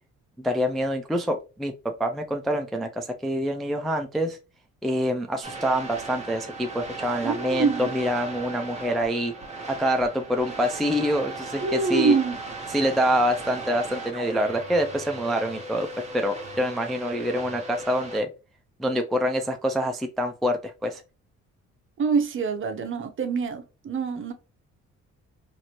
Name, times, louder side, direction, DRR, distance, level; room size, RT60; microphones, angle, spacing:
voice 1, 0.4-4.4 4.8-9.3 9.7-12.2 12.7-15.9 16.1-18.3 18.8-21.0, equal, ahead, 0.3 m, -26 dB
sound 1, 5.4-18.2, right 2 dB, 25° right, 1.0 m, -37 dB
voice 2, 7.2-7.9 11.6-12.4 22.0-24.3, right 5 dB, 40° right, 0.7 m, -25 dB
2.9 x 2.6 x 2.8 m
cardioid pair, 90°, 30 cm